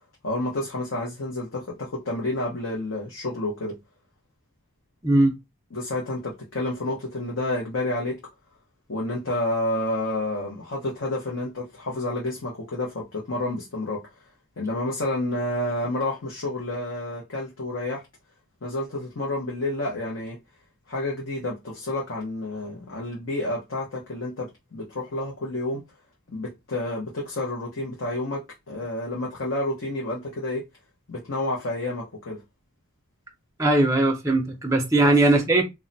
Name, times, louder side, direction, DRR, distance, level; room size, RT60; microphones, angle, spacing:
voice 1, 0.2-3.8 5.7-8.2 8.9-14.0 14.6-18.0 18.6-20.4 20.9-25.8 26.3-30.6 31.1-32.4 35.0-35.1, left 1 dB, 65° left, 0.7 m, -29 dB
voice 2, 5.0-5.3 33.6-35.6, right 2 dB, 15° right, 0.5 m, -19 dB
2.2 x 2.1 x 3.8 m
head